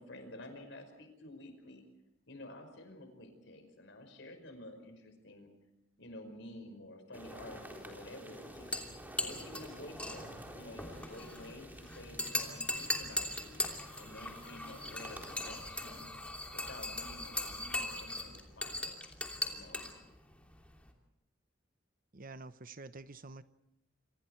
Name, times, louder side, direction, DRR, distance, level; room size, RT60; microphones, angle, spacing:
voice 1, 0.0-1.8 2.3-5.5 6.0-8.7 9.2-13.6 14.0-16.1 16.5-18.9 19.4-19.9, left 1 dB, 70° left, 7 dB, 5.4 m, -51 dB
sound 1, 7.1-15.5, right 1 dB, 10° right, 4.0 m, -51 dB
sound 2, 8.5-20.9, left 1 dB, 5° left, 3.0 m, -40 dB
voice 2, 22.1-23.4, right 3 dB, 45° right, 13 dB, 0.9 m, -48 dB
29.0 x 25.5 x 4.6 m, 0.89 s
head